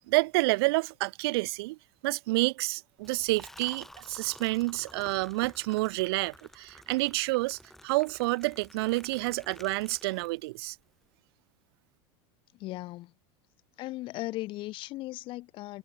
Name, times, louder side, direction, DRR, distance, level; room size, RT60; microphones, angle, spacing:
voice 1, 0.1-1.8 2.0-10.8, right 23 dB, 75° right, 0.4 m, -29 dB
Liquid, 3.0-10.7, left 1 dB, ahead, 3.4 m, -52 dB
voice 2, 12.6-13.1 13.8-15.8, left 18 dB, 40° left, 0.9 m, -37 dB
supercardioid pair, 150°, 13 cm